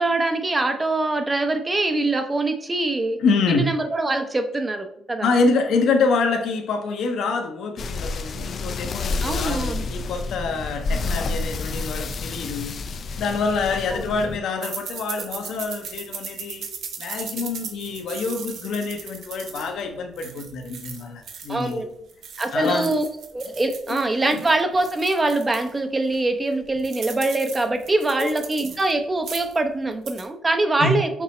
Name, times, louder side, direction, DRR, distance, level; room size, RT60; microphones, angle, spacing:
voice 1, 0.0-3.2 3.5-5.3 9.2-9.8 13.9-14.0 21.5-21.8 22.4-23.1 23.3-31.1, right 2 dB, 20° right, 0.6 m, -23 dB
voice 2, 3.2-3.7 5.2-12.8 13.2-16.6 17.0-21.9 22.5-23.0 23.9-24.0 24.3-24.4 28.2-28.3 30.8-31.0, left 4 dB, 75° left, 0.7 m, -26 dB
sound 1, 7.8-14.4, left 3 dB, 55° left, 0.3 m, -29 dB
sound 2, 14.6-21.8 22.1-25.7 26.1-26.2 26.5-28.9 29.2-29.6 29.9-30.3, right 6 dB, 70° right, 0.7 m, -37 dB
5.9 x 2.0 x 4.2 m
cardioid pair, 90°, 0 cm